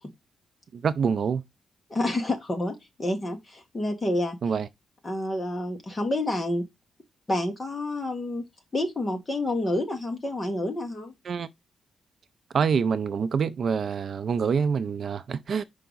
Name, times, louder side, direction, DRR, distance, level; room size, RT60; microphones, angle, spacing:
voice 1, 0.7-1.4 4.4-4.7 11.3-11.5 12.5-15.6, right 6 dB, 45° right, 0.4 m, -26 dB
voice 2, 1.9-4.4 5.0-6.6 7.3-8.4 8.7-11.1, left 1 dB, 20° left, 1.4 m, -28 dB
5.5 x 4.8 x 3.9 m
wide cardioid pair, 170°, 0 cm